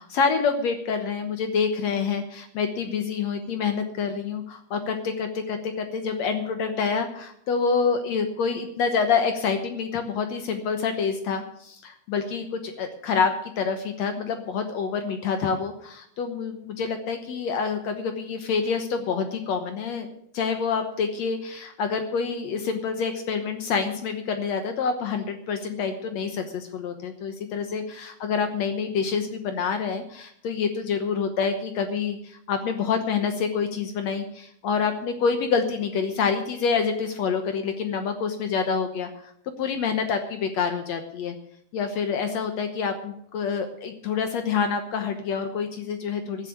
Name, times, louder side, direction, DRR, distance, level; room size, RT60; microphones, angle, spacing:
voice 1, 0.1-20.1 20.3-39.1 39.6-41.3 41.7-46.5, left 5 dB, 70° left, 7 dB, 1.6 m, -27 dB
14.0 x 7.6 x 8.7 m, 0.70 s
omnidirectional pair, 4.5 m